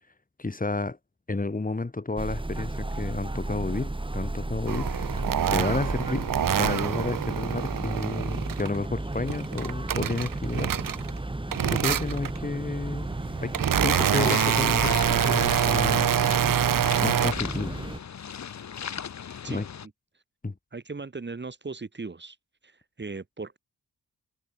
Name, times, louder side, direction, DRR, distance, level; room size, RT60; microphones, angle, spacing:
voice 1, 0.4-1.0 1.3-5.1 5.5-6.3 6.6-10.7 11.6-13.1 13.4-16.1 17.0-17.8 19.5-19.7 20.4-20.5, left 3 dB, 25° left, 5.4 m, -31 dB
sound 1, 2.2-18.0, right 2 dB, 15° right, 5.6 m, -33 dB
sound 2, 4.7-8.8 9.1-11.2 11.5-12.4 13.0-17.3, right 9 dB, 70° right, 1.5 m, -26 dB
sound 3, 13.9-19.9, left 8 dB, 55° left, 1.3 m, -37 dB
voice 2, 20.7-22.4 22.6-23.6, right 4 dB, 30° right, 3.5 m, -38 dB
cardioid pair, 90°, 34 cm